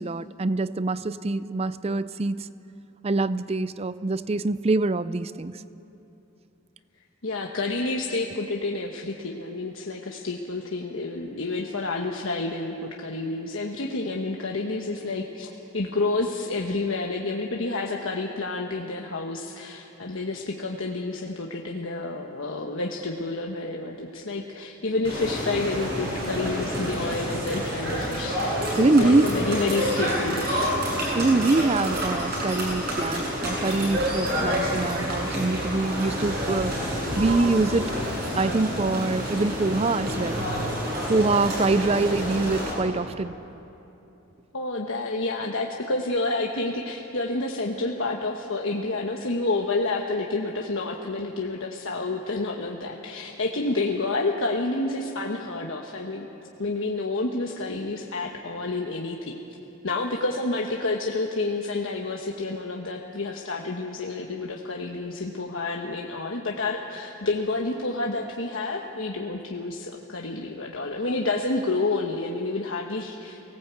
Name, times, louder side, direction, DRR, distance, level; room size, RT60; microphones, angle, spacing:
voice 1, 0.0-2.5 3.0-5.6 28.8-29.3 31.1-37.9 38.4-40.5 41.1-43.3, right 3 dB, 30° right, 16 dB, 0.4 m, -24 dB
voice 2, 7.2-30.7 44.5-56.3 56.6-59.4 59.8-73.4, left 2 dB, 70° left, 0 dB, 1.3 m, -29 dB
sound 1, 25.0-42.7, equal, 50° right, 7.7 m, -28 dB
24.0 x 18.5 x 8.2 m, 3.0 s
head